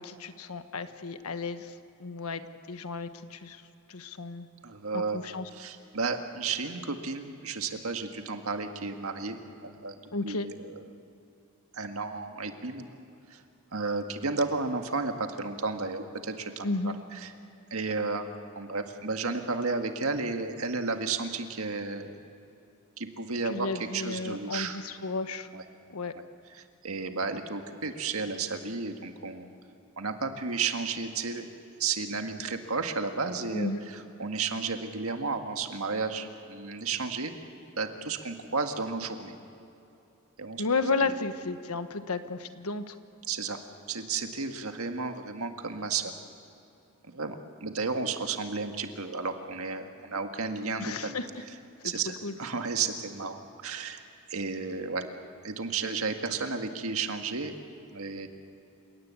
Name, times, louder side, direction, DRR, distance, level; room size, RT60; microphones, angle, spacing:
voice 1, 0.0-1.7 2.0-2.4 2.7-3.6 3.9-4.5 4.9-5.5 10.1-10.5 16.6-16.9 23.4-25.5 25.9-26.1 33.5-33.8 40.6-43.0 50.8-51.3 52.2-52.3, left 3 dB, 90° left, 10 dB, 1.3 m, -33 dB
voice 2, 4.6-5.2 5.5-10.0 10.2-10.9 11.7-13.0 13.3-13.4 13.7-17.3 17.7-18.2 18.6-22.2 23.0-24.8 25.5-25.6 26.1-26.2 26.5-29.5 30.0-31.5 31.8-37.3 37.8-39.3 40.4-40.6 41.0-41.1 43.3-43.6 43.9-46.1 47.1-51.2 51.8-54.0 54.3-55.1 55.4-57.6 57.9-58.3, right 4 dB, 75° right, 6 dB, 1.9 m, -33 dB
29.0 x 17.5 x 8.4 m, 2.8 s
head